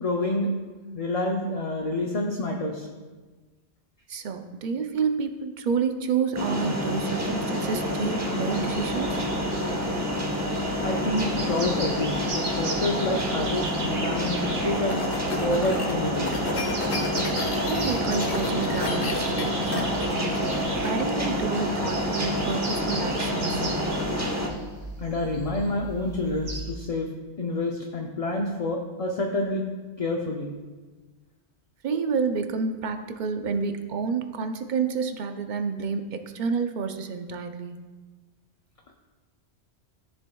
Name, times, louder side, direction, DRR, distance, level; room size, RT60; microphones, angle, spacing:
voice 1, 0.0-0.5 0.9-2.9 10.8-14.4 14.6-15.1 15.4-16.3 25.0-27.1 27.4-29.6 30.0-30.5, left 2 dB, 40° left, 1 dB, 0.6 m, -28 dB
voice 2, 4.1-9.2 17.6-20.4 20.8-23.7 31.8-37.8, right 5 dB, 50° right, 7 dB, 0.6 m, -29 dB
sound 1, 6.3-24.5, equal, 15° right, 0.8 m, -28 dB
sound 2, 8.5-26.8, right 2 dB, 85° right, 1.6 m, -38 dB
sound 3, 14.4-20.9, left 4 dB, 85° left, 1.3 m, -34 dB
13.0 x 7.0 x 2.3 m, 1.3 s
omnidirectional pair, 1.1 m